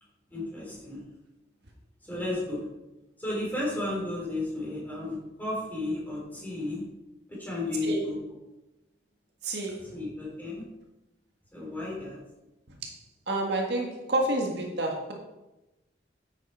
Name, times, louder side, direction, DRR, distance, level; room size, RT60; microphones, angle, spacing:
voice 1, 0.3-1.0 2.1-2.7 3.2-6.8 7.4-8.2 9.9-10.6 11.5-12.2, left 2 dB, 10° left, -5 dB, 4.0 m, -33 dB
voice 2, 9.4-9.9 12.8-12.9 13.3-15.1, right 2 dB, 65° right, 0 dB, 1.7 m, -29 dB
9.8 x 8.0 x 4.4 m, 1.0 s
head